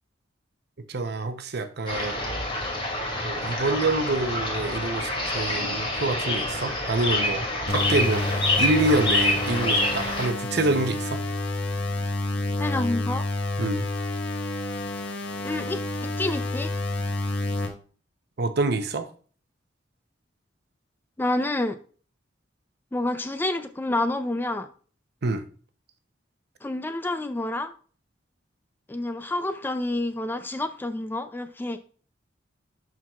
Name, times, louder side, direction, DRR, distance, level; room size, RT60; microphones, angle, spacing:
voice 1, 0.9-2.2 3.2-7.5 7.7-8.2 8.6-11.2 13.6-13.9 18.4-19.1 25.2-25.4, right 2 dB, 60° right, 0.7 m, -26 dB
sound 1, 1.9-10.3, left 2 dB, 30° left, 2.4 m, -27 dB
sound 2, 7.7-17.7, left 2 dB, 70° left, 1.2 m, -29 dB
voice 2, 12.6-13.3 15.4-16.7 21.2-21.8 22.9-24.7 26.6-27.7 28.9-31.8, left 2 dB, 10° left, 0.3 m, -28 dB
11.5 x 4.6 x 2.4 m
head